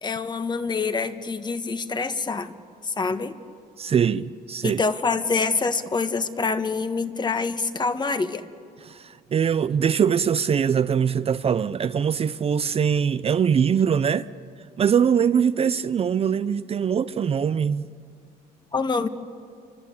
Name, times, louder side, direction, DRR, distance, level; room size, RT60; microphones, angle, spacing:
voice 1, 0.0-2.5 2.8-3.4 4.6-8.4 18.7-19.1, left 4 dB, 25° left, 1.5 m, -26 dB
voice 2, 3.8-4.8 8.9-14.3 14.8-17.8, right 7 dB, 35° right, 0.6 m, -22 dB
27.5 x 25.0 x 8.5 m
cardioid pair, 110°, 17 cm